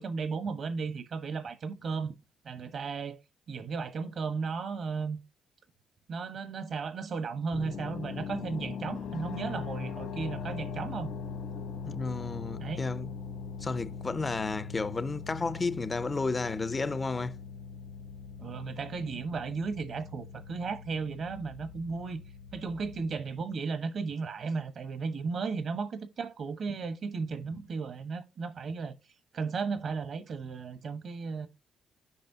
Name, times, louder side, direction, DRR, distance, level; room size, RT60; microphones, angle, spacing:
voice 1, 0.0-2.2 2.4-3.2 3.5-5.2 6.1-11.1 12.6-12.8 18.4-22.2 22.5-29.0 29.3-31.5, right 5 dB, 60° right, 1.2 m, -35 dB
sound 1, 7.5-23.2, left 6 dB, 75° left, 1.1 m, -41 dB
voice 2, 11.8-13.1 13.6-17.4, left 3 dB, 30° left, 0.4 m, -32 dB
8.5 x 5.5 x 2.7 m
cardioid pair, 90°, 0 cm